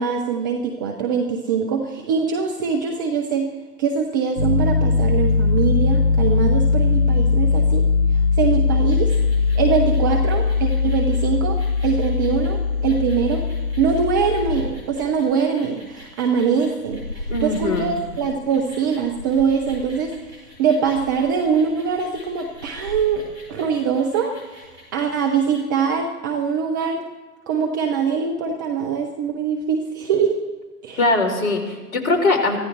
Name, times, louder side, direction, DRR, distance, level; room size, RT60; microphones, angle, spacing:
voice 1, 0.0-3.5 3.8-7.9 8.4-9.1 9.5-13.5 13.8-20.1 20.6-24.3 24.9-27.0 27.5-30.4 30.8-31.0, right 6 dB, 15° right, 3 dB, 0.4 m, -23 dB
Piano, 4.4-14.6, left 4 dB, 85° left, 2.6 m, -20 dB
sound 1, 8.9-25.6, left 1 dB, 85° right, 6.0 m, -39 dB
voice 2, 17.3-17.9 31.0-32.6, left 2 dB, 60° left, 4 dB, 3.6 m, -21 dB
24.0 x 15.0 x 3.2 m, 1.3 s
figure-of-eight pair, 110°, 48 cm